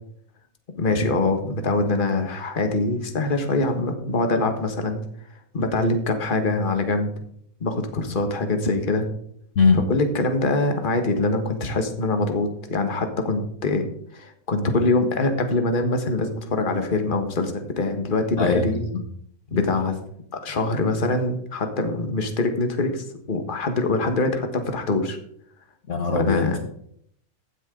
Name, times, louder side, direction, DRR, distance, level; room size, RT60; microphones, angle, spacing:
voice 1, 0.7-5.0 5.5-7.1 7.6-9.1 9.9-18.9 19.5-19.9 20.3-25.2 26.1-26.6, left 2 dB, 35° left, 6 dB, 1.6 m, -24 dB
voice 2, 18.4-19.0 19.5-19.6 25.9-26.6, left 4 dB, 55° left, 5 dB, 1.5 m, -21 dB
15.0 x 9.8 x 3.8 m, 0.67 s
omnidirectional pair, 1.6 m